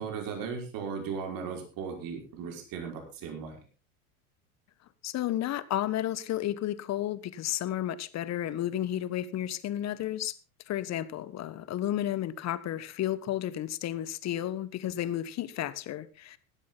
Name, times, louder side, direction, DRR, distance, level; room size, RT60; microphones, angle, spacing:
voice 1, 0.0-3.6, right 6 dB, 50° right, 5.4 m, -37 dB
voice 2, 5.0-10.3 10.7-16.4, left 12 dB, 40° left, 1.3 m, -32 dB
16.0 x 12.0 x 4.0 m
hypercardioid pair, 90°, 43 cm